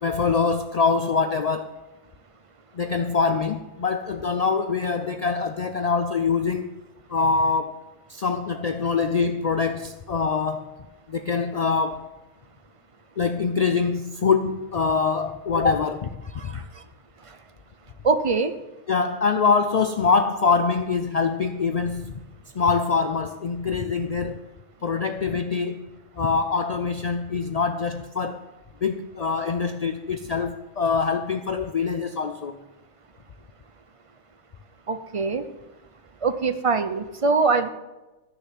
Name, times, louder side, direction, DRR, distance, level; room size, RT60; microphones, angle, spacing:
voice 1, 0.0-1.8 2.7-6.7 7.1-7.8 8.1-10.7 11.1-12.1 13.2-16.1 16.4-16.6 18.9-22.1 22.6-24.5 24.8-25.9 26.2-28.4 28.8-32.6, left 5 dB, 60° left, 8 dB, 0.4 m, -24 dB
voice 2, 18.0-18.5 34.9-35.4 36.2-37.7, right 4 dB, 35° right, 10 dB, 0.6 m, -23 dB
13.5 x 6.7 x 7.6 m, 1.1 s
omnidirectional pair, 1.4 m